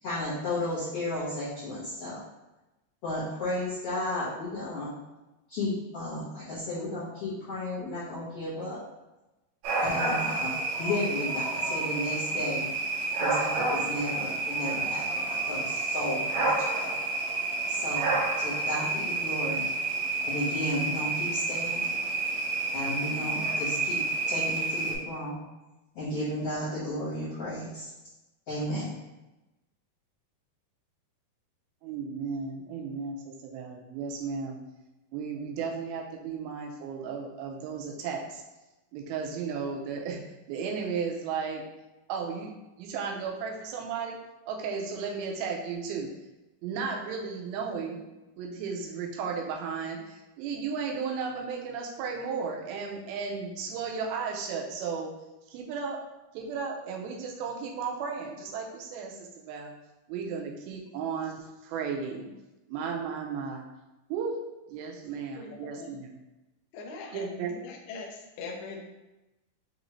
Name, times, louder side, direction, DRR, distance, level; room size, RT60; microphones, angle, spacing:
voice 1, 0.0-2.2 3.0-4.9 5.5-8.8 9.8-12.6 13.2-16.9 17.7-19.6 20.2-21.9 22.7-24.0 24.3-25.4 25.9-27.9 28.5-28.9, left 1 dB, 60° left, -12 dB, 1.7 m, -33 dB
sound 1, 9.6-24.9, right 3 dB, 70° right, 2.3 m, -29 dB
voice 2, 31.8-34.6 35.1-38.4 38.9-40.2 40.5-41.6 42.1-42.5 42.8-44.2 44.5-46.1 46.6-48.0 48.4-55.1 55.5-56.0 56.3-59.7 60.1-62.3 62.7-63.7 64.1-64.4 64.7-66.2 67.1-67.6, right 5 dB, 90° right, 0 dB, 2.5 m, -34 dB
voice 3, 65.4-66.0 66.7-67.2 67.6-68.8, left 4 dB, 75° left, 0 dB, 1.9 m, -41 dB
6.2 x 2.6 x 3.1 m, 1.0 s
omnidirectional pair, 4.3 m